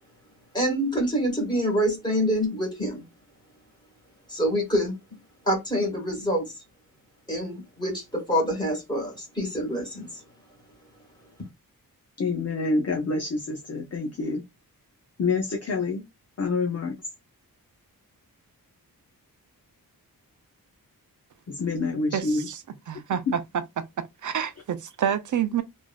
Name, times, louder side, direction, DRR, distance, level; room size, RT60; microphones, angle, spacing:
voice 1, 0.5-3.0 4.3-5.0 5.5-6.6 7.3-10.2, equal, 10° left, 1.6 m, -26 dB
voice 2, 12.2-14.4 15.2-16.0 16.4-17.0 21.5-22.5, left 3 dB, 45° left, 0.6 m, -27 dB
voice 3, 22.1-23.4 23.8-25.6, right 9 dB, 55° right, 0.5 m, -28 dB
3.2 x 2.6 x 2.3 m
wide cardioid pair, 170°, 36 cm